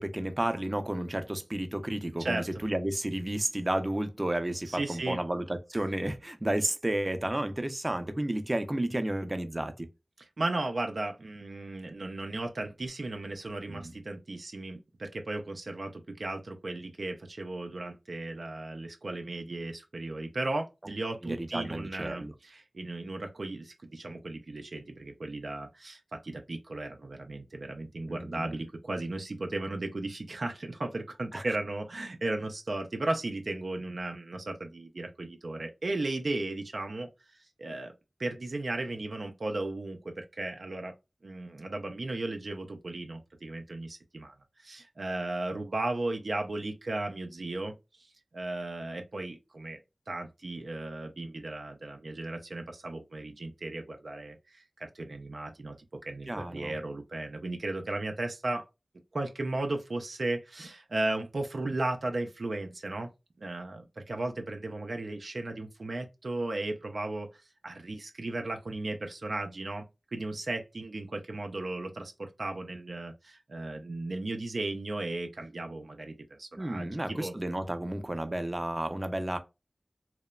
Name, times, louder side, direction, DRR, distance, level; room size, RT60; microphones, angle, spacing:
voice 1, 0.0-9.9 13.7-13.9 21.2-22.3 28.1-28.4 31.3-31.5 56.3-56.7 76.6-79.4, right 1 dB, 30° right, 0.4 m, -32 dB
voice 2, 2.2-2.6 4.7-5.2 10.2-37.1 37.6-37.9 38.2-40.9 41.2-47.7 48.0-48.1 48.3-49.8 50.1-58.6 59.1-63.1 63.4-67.3 67.6-69.8 70.1-77.3, right 2 dB, 90° right, 0.4 m, -35 dB
2.9 x 2.0 x 2.2 m
wide cardioid pair, 60°, 0 cm